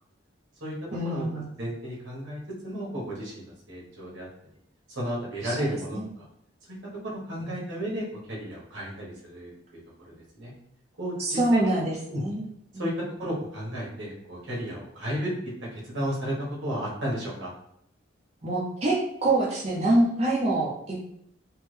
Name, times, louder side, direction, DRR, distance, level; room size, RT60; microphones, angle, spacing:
voice 1, 0.9-1.5 5.4-5.7 5.9-6.1 7.5-7.6 11.2-12.4 18.4-20.9, right 2 dB, 30° right, -6 dB, 0.6 m, -25 dB
voice 2, 1.6-4.3 4.9-6.0 6.7-6.8 7.0-9.5 10.0-10.5 11.0-11.7 12.1-12.2 12.8-12.9 13.2-15.3 15.7-17.5, equal, 75° right, -5 dB, 1.3 m, -33 dB
3.5 x 2.1 x 3.2 m, 0.71 s
head